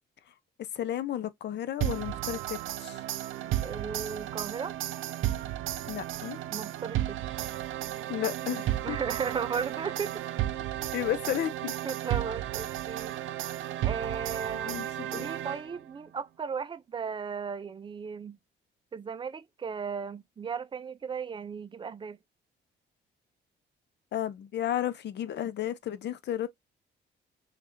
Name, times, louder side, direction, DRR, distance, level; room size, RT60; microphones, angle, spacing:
voice 1, 0.7-3.0 5.9-6.4 8.1-9.0 10.9-11.7 14.7-15.3 24.1-26.5, left 11 dB, 60° left, 0.6 m, -33 dB
sound 1, 1.8-15.9, right 13 dB, 80° right, 0.5 m, -33 dB
voice 2, 3.6-4.8 6.5-7.2 8.8-10.2 11.8-13.2 13.8-18.4 18.9-22.2, right 6 dB, 25° right, 0.4 m, -36 dB
3.3 x 2.4 x 4.4 m
cardioid pair, 90°, 20 cm